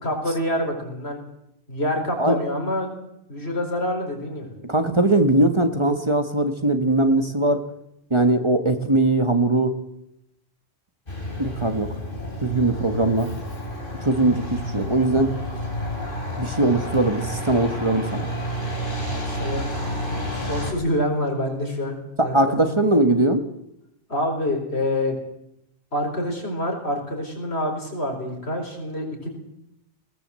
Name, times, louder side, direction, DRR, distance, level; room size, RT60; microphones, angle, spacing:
voice 1, 0.0-1.2 1.7-2.9 3.3-4.5 19.0-19.6 20.4-22.5 24.1-25.2 25.9-29.3, left 1 dB, 75° left, 2 dB, 4.9 m, -26 dB
voice 2, 4.6-7.6 8.1-9.8 11.4-12.0 12.4-13.3 14.0-15.3 16.4-18.3 22.3-23.5, right 2 dB, 25° right, 7 dB, 1.5 m, -20 dB
Truck, 11.1-20.7, equal, 55° left, 4.3 m, -30 dB
20.5 x 17.0 x 7.7 m, 0.82 s
omnidirectional pair, 1.1 m